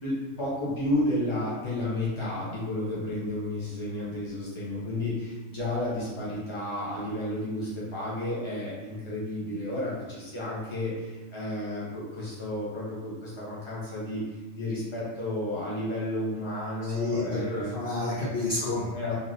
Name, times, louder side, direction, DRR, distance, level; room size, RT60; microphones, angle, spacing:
voice 1, 0.0-14.2 14.5-17.7 18.2-18.3 18.9-19.1, left 1 dB, 25° left, -7 dB, 0.8 m, -32 dB
voice 2, 16.8-18.9, left 2 dB, 60° left, -6 dB, 0.6 m, -30 dB
3.0 x 2.5 x 2.5 m, 1.2 s
omnidirectional pair, 1.4 m